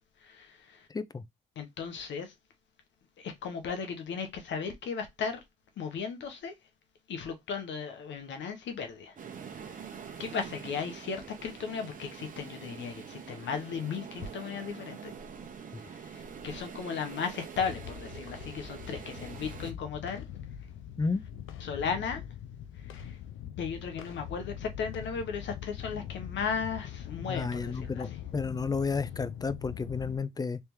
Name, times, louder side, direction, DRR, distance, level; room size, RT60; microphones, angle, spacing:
voice 1, 0.2-0.9 1.6-2.3 3.2-5.4 5.8-6.5 7.1-9.2 9.8-15.1 15.8-20.2 21.6-22.2 22.7-23.2 23.6-28.2, left 6 dB, 65° left, 1.0 m, -36 dB
voice 2, 0.9-1.2 21.0-21.2 27.3-28.1 28.3-30.6, left 4 dB, 20° left, 0.4 m, -32 dB
sound 1, 9.2-19.7, right 6 dB, 45° right, 0.9 m, -45 dB
sound 2, 17.6-30.2, left 10 dB, 85° left, 0.5 m, -42 dB
3.4 x 3.2 x 3.0 m
cardioid pair, 90°, 20 cm